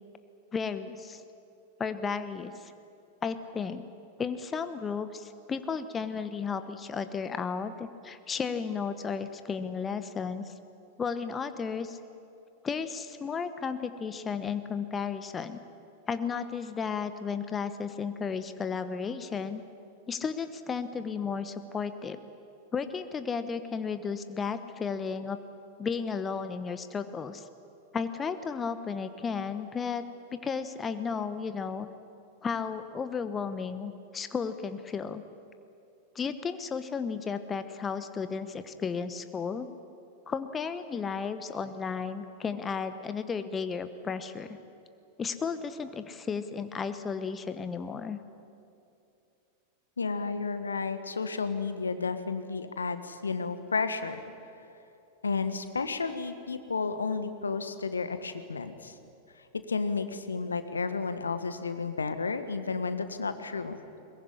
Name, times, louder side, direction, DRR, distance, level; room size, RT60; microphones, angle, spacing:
voice 1, 0.5-1.2 1.8-2.7 3.2-3.8 4.2-10.5 11.0-12.0 12.6-15.6 16.1-19.6 20.1-22.2 22.7-25.4 25.8-27.5 27.9-30.0 30.3-31.9 32.4-35.2 36.1-39.7 40.3-44.6 45.2-48.2, left 5 dB, 20° left, 10 dB, 1.1 m, -33 dB
voice 2, 50.0-54.2 55.2-58.9 59.7-63.8, left 4 dB, 75° left, 10 dB, 1.5 m, -32 dB
22.0 x 21.5 x 9.9 m, 2.7 s
figure-of-eight pair, 90°, 0 cm